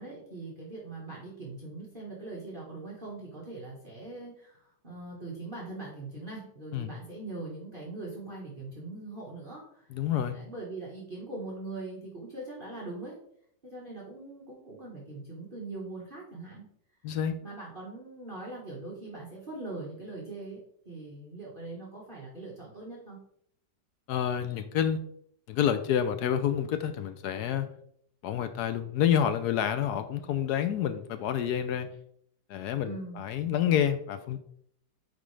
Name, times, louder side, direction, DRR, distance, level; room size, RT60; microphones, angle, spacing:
voice 1, 0.0-9.9 10.3-13.2 13.6-16.7 17.4-23.2 32.8-33.2, right 2 dB, 30° right, -5 dB, 1.4 m, -41 dB
voice 2, 9.9-10.4 17.0-17.3 24.1-25.0 25.5-27.7 28.2-31.9 32.5-34.4, left 9 dB, 70° left, 9 dB, 1.0 m, -28 dB
9.2 x 4.1 x 3.3 m, 0.68 s
omnidirectional pair, 2.0 m